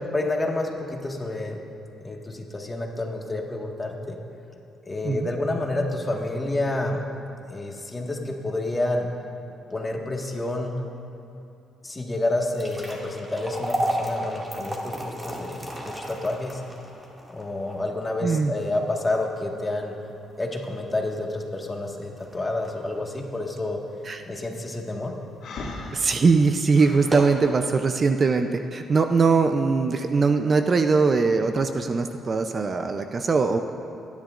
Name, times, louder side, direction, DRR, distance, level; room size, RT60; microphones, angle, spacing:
voice 1, 0.1-1.6 2.0-4.2 4.8-7.0 7.5-9.1 9.7-10.7 11.8-16.6 17.3-19.9 20.4-23.8 24.3-25.1, left 2 dB, 20° left, 0 dB, 1.7 m, -29 dB
sound 1, 12.3-24.6 25.1-25.2 25.9-26.0 26.4-26.5 26.9-27.5, equal, 15° right, 2.2 m, -34 dB
voice 2, 18.2-18.5 24.0-24.2 25.9-33.6, right 4 dB, 40° right, 7 dB, 0.5 m, -21 dB
Breathing, 25.4-27.2, left 3 dB, 75° left, 2.0 m, -37 dB
25.5 x 10.5 x 2.5 m, 2.8 s
cardioid pair, 90°, 0 cm